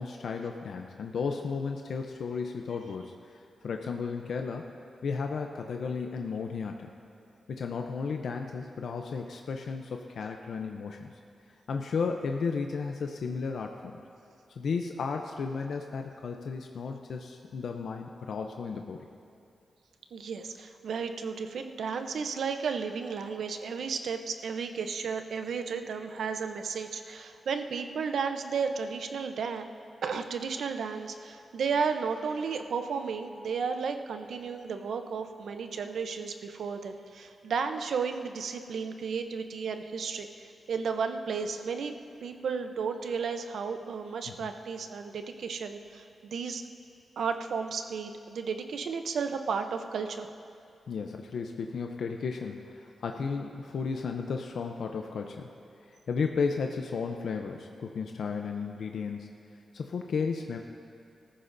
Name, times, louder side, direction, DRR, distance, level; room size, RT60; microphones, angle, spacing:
voice 1, 0.0-4.7 5.0-6.9 7.5-11.1 11.7-13.9 14.5-19.1 44.3-44.5 50.9-55.5 55.9-59.3 59.7-60.6, left 5 dB, 70° left, 3 dB, 0.6 m, -34 dB
voice 2, 20.1-29.7 30.0-41.9 42.2-46.6 47.2-50.3, right 5 dB, 75° right, 7 dB, 0.7 m, -33 dB
20.0 x 14.0 x 2.6 m, 2.5 s
wide cardioid pair, 175°, 0 cm